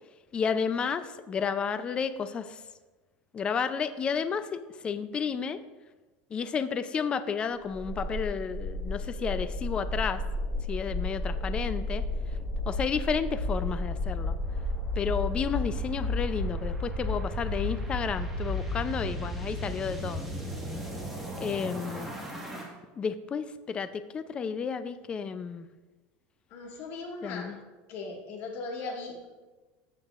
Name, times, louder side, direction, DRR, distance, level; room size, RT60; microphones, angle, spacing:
voice 1, 0.3-2.6 3.3-5.6 6.3-10.2 10.7-12.0 12.7-14.3 15.0-20.3 21.4-22.1 23.0-25.7 27.2-27.6, left 6 dB, 20° left, 12 dB, 0.4 m, -32 dB
sound 1, 7.7-22.6, left 2 dB, 5° right, 1.5 m, -33 dB
voice 2, 26.5-27.5 27.9-29.3, left 3 dB, 45° left, 1 dB, 1.8 m, -38 dB
14.0 x 6.6 x 2.4 m, 1.2 s
supercardioid pair, 155°, 5 cm